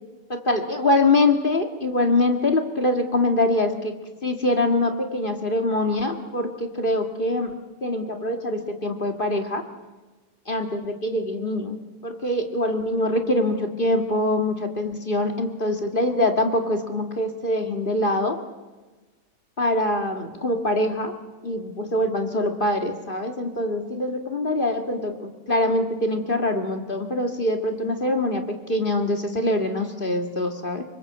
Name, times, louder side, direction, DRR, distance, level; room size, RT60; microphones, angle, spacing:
voice 1, 0.3-3.9 4.2-9.6 10.5-18.4 19.6-21.1 21.4-30.8, left 1 dB, 35° left, 4 dB, 0.8 m, -24 dB
26.5 x 25.0 x 8.0 m, 1.2 s
omnidirectional pair, 4.2 m